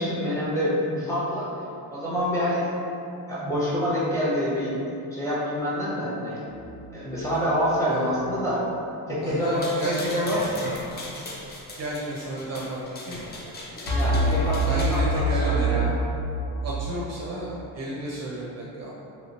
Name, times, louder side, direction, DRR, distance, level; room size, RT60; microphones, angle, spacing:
voice 1, 0.0-1.5 1.9-2.7 3.3-4.7 5.1-6.4 6.9-8.6 9.1-10.6 13.9-15.9, equal, 5° left, -8 dB, 0.7 m, -26 dB
sound 1, 6.5-7.4 13.9-16.9, right 1 dB, 65° left, 1.0 m, -25 dB
voice 2, 9.2-10.0 10.9-11.0 11.8-13.5 14.1-14.2 14.5-15.9 16.6-18.9, right 1 dB, 40° right, -5 dB, 0.4 m, -33 dB
sound 2, 9.4-15.0, left 1 dB, 25° left, 0.3 m, -38 dB
3.0 x 2.9 x 2.8 m, 2.7 s
cardioid pair, 140°, 42 cm